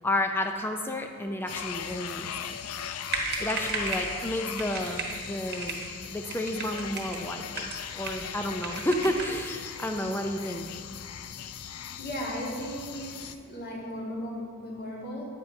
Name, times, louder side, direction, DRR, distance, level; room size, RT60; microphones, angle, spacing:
voice 1, 0.0-2.6 3.4-5.8 6.1-7.7 8.0-10.6, left 1 dB, 10° left, 4 dB, 0.4 m, -31 dB
sound 1, 1.5-13.4, left 9 dB, 80° left, 0.4 m, -39 dB
sound 2, 3.1-4.1 4.6-5.2 5.5-5.9 6.3-7.2 7.5-8.3 8.6-9.4, right 4 dB, 50° right, 1.1 m, -34 dB
voice 2, 12.0-15.2, equal, 45° left, -3 dB, 1.7 m, -36 dB
10.5 x 8.7 x 2.6 m, 2.3 s
head